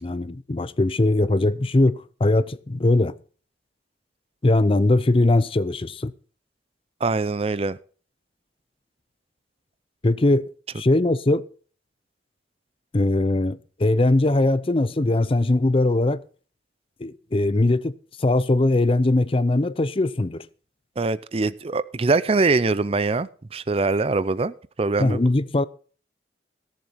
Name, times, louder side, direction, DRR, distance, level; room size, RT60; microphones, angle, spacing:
voice 1, 0.0-3.1 4.4-6.1 10.0-10.5 10.8-11.4 12.9-16.2 17.0-17.9 18.2-20.5 25.0-25.6, left 2 dB, 30° left, 0.5 m, -20 dB
voice 2, 7.0-7.8 21.0-25.2, right 3 dB, 30° right, 0.5 m, -23 dB
17.0 x 7.4 x 5.7 m
head